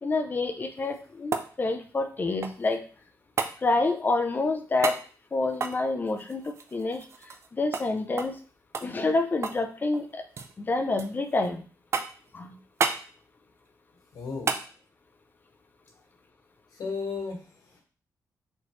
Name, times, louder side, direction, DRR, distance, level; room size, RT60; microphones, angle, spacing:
voice 1, 0.0-2.8 3.6-5.0 5.3-7.1 7.5-8.4 8.8-10.2 10.6-11.6 12.3-12.5, left 3 dB, 30° left, 7 dB, 0.5 m, -28 dB
sound 1, 0.7-2.8 3.4-3.6 4.8-5.0 5.5-7.5 7.7-7.9 8.2-8.4 8.7-9.7 9.9-10.5 11.0-11.5 11.9-12.3 12.8-13.0 14.5-14.7 17.0-17.1, right 5 dB, 45° right, 0.4 m, -32 dB
voice 2, 14.1-14.5 16.7-17.8, left 4 dB, 85° left, -1 dB, 1.6 m, -35 dB
4.3 x 3.0 x 3.2 m, 0.39 s
wide cardioid pair, 135°, 6 cm